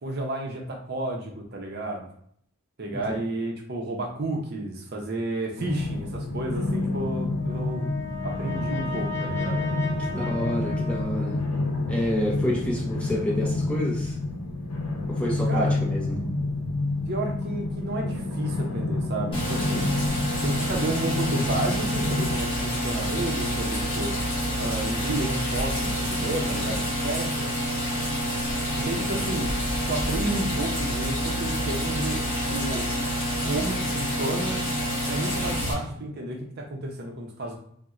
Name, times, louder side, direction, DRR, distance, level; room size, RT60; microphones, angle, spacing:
voice 1, 0.0-2.1 2.8-8.0 8.2-9.6 15.5-15.8 17.1-19.9 20.4-24.1 24.6-27.4 28.8-29.5 29.9-32.2 32.5-33.0 33.4-34.6 35.1-37.6, right 2 dB, 45° right, 1 dB, 0.6 m, -31 dB
sound 1, 5.6-22.4, left 2 dB, 90° left, 0.6 m, -29 dB
Brass instrument, 7.3-11.7, left 4 dB, 50° left, 1.1 m, -36 dB
voice 2, 10.1-11.4 11.9-14.2 15.1-16.2 29.0-29.2, left 1 dB, 5° left, -2 dB, 0.5 m, -29 dB
sound 2, 19.3-35.7, equal, 25° left, 1.0 m, -28 dB
4.0 x 2.1 x 2.4 m, 0.64 s
head